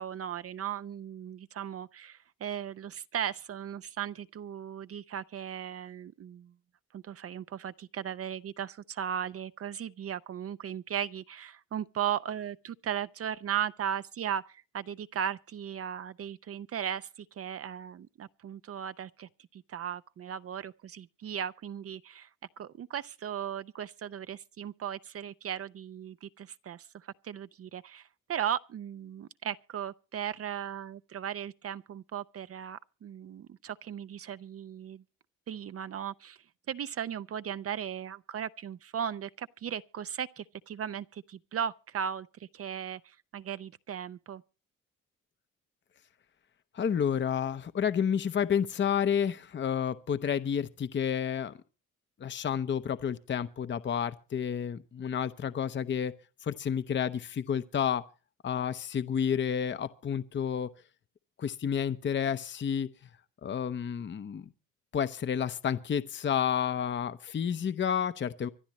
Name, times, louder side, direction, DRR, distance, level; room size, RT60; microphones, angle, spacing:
voice 1, 0.0-6.5 6.9-22.3 22.6-35.0 35.5-44.4, right 9 dB, 50° right, 0.6 m, -37 dB
voice 2, 46.7-51.5 52.2-56.1 56.4-58.0 58.4-60.7 61.4-62.9 63.4-64.4 64.9-68.5, left 8 dB, 40° left, 0.8 m, -30 dB
25.0 x 11.5 x 3.0 m
cardioid pair, 90°, 30 cm